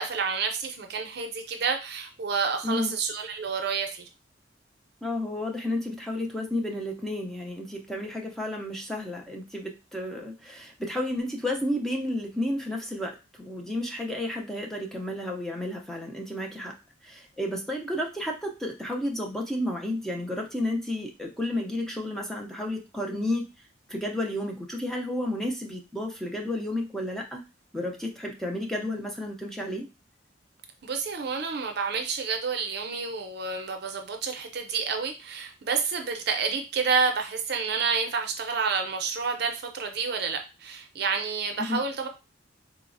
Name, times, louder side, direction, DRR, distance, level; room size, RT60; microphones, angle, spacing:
voice 1, 0.0-4.1 30.8-42.1, right 5 dB, 55° right, 5 dB, 0.5 m, -29 dB
voice 2, 5.0-16.7 17.0-23.5 23.9-27.4 27.7-29.9 41.6-41.8, left 1 dB, ahead, 0 dB, 0.4 m, -32 dB
3.8 x 2.0 x 2.5 m, 0.28 s
head